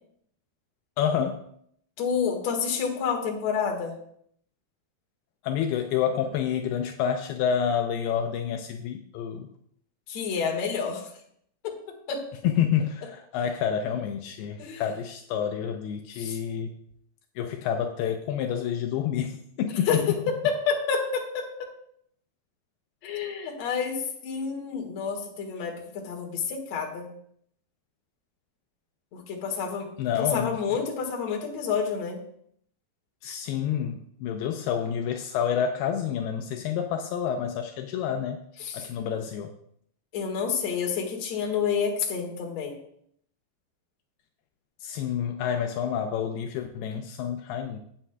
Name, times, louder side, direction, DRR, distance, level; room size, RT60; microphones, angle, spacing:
voice 1, 1.0-1.4 5.4-9.5 12.4-16.8 17.4-20.0 30.0-30.6 33.2-38.4 38.7-39.5 44.8-47.8, left 8 dB, 80° left, 5 dB, 2.5 m, -28 dB
voice 2, 2.0-3.9 10.1-11.1 11.6-11.8 12.1-12.2 14.6-14.8 16.1-16.4 19.9-21.5 23.0-27.1 29.1-29.9 30.2-32.2 38.6-38.9 40.1-42.8, left 6 dB, 50° left, 1 dB, 2.5 m, -29 dB
17.0 x 8.3 x 2.3 m, 0.67 s
omnidirectional pair, 4.6 m